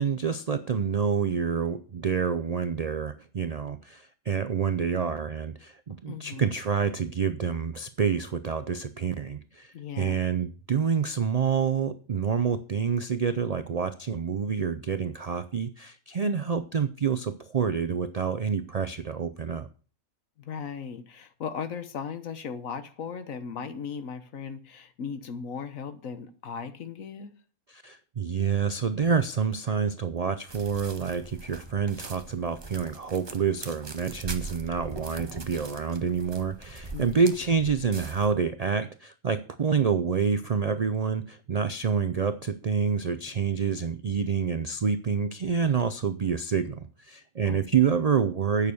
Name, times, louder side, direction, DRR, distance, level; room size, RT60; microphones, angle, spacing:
voice 1, 0.0-19.7 27.7-48.7, right 6 dB, 85° right, 0.3 m, -27 dB
voice 2, 6.1-6.5 9.7-10.2 20.4-27.3 36.9-37.1 47.5-47.9, left 6 dB, 70° left, 1.4 m, -37 dB
sound 1, 30.5-38.3, right 3 dB, 20° right, 0.8 m, -42 dB
9.2 x 6.6 x 6.9 m
omnidirectional pair, 1.5 m